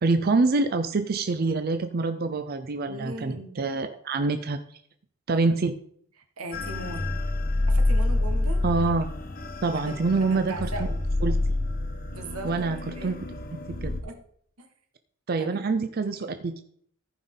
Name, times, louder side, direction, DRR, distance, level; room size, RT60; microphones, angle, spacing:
voice 1, 0.0-4.6 5.3-5.8 8.6-9.1 9.6-10.7 11.2-11.4 12.4-13.2 13.8-13.9 15.3-16.6, right 3 dB, 45° right, 9 dB, 0.5 m, -25 dB
voice 2, 2.8-3.5 6.4-7.2 7.7-8.6 9.7-11.0 12.1-13.2 14.0-14.2 14.6-14.7 15.4-15.7 16.0-16.3, right 2 dB, 90° right, 5 dB, 1.6 m, -39 dB
sound 1, 6.5-14.0, left 2 dB, 40° left, 1.0 m, -28 dB
14.5 x 5.5 x 3.8 m, 0.64 s
head